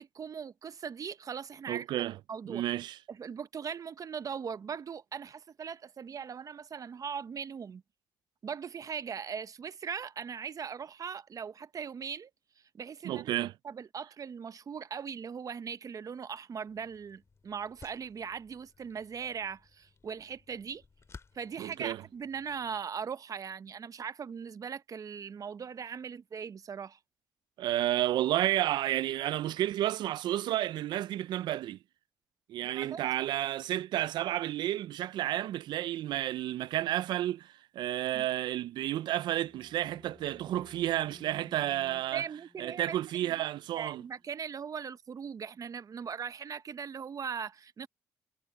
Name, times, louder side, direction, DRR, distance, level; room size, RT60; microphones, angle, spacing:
voice 1, 0.0-1.9 2.3-2.6 3.1-7.8 8.4-12.3 12.7-13.2 13.6-20.8 21.3-27.0 32.6-33.0 38.1-38.3 42.1-43.0 43.3-43.5 43.7-47.9, right 6 dB, 50° right, 0.9 m, -39 dB
voice 2, 1.7-2.2 2.5-3.0 13.0-13.5 21.6-22.0 27.6-31.8 32.5-42.2 42.6-44.0, right 13 dB, 80° right, 0.4 m, -31 dB
sound 1, 16.7-22.8, left 4 dB, 40° left, 2.2 m, -58 dB
sound 2, 39.0-44.5, left 2 dB, 20° left, 7.6 m, -58 dB
cardioid pair, 70°, 8 cm